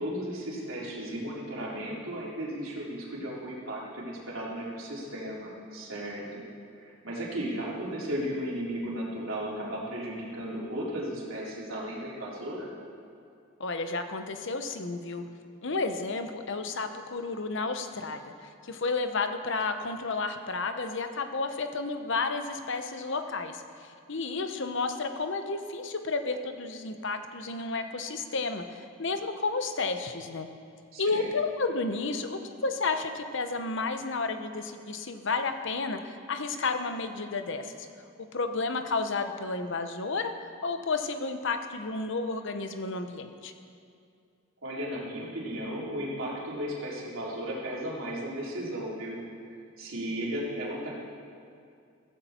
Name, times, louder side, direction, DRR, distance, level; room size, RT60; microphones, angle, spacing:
voice 1, 0.0-6.4 6.8-12.7 30.9-31.3 44.6-49.2 49.8-50.9, equal, 70° right, -5 dB, 3.9 m, -35 dB
voice 2, 13.6-15.2 15.6-30.5 31.0-37.8 38.2-40.3 40.6-43.5, left 3 dB, 65° left, 7 dB, 1.0 m, -32 dB
15.5 x 15.0 x 4.4 m, 2.4 s
head